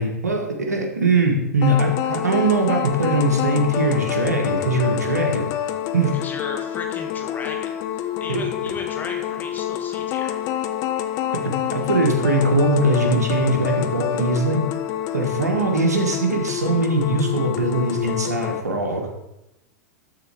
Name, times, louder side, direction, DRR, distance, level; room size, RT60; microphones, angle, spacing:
voice 1, 0.0-5.5 5.9-6.2 8.3-8.4 11.4-14.6 15.1-19.1, right 2 dB, 85° right, 3 dB, 1.8 m, -21 dB
sound 1, 1.6-18.6, left 11 dB, 45° left, 0.8 m, -27 dB
voice 2, 6.1-10.4, left 4 dB, 20° left, 1 dB, 2.0 m, -35 dB
12.5 x 4.4 x 5.0 m, 0.91 s
hypercardioid pair, 100°, 9 cm